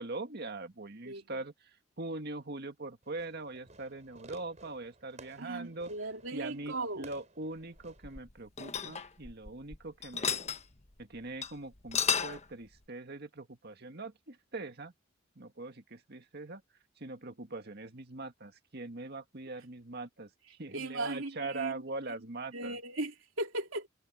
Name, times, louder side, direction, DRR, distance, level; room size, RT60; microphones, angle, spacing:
voice 1, 0.0-10.4 11.0-14.9 15.4-16.6 17.0-20.3 20.6-22.8, right 2 dB, 55° right, 1.9 m, -42 dB
Fireworks, 3.0-8.2, right 3 dB, 35° right, 4.8 m, -56 dB
voice 2, 5.4-7.1 20.7-21.8 22.5-23.9, right 2 dB, 85° right, 3.0 m, -37 dB
sound 1, 7.8-9.8 10.0-10.6 11.0-11.1 11.4-11.5 11.8-12.4, left 7 dB, 35° left, 1.2 m, -33 dB
head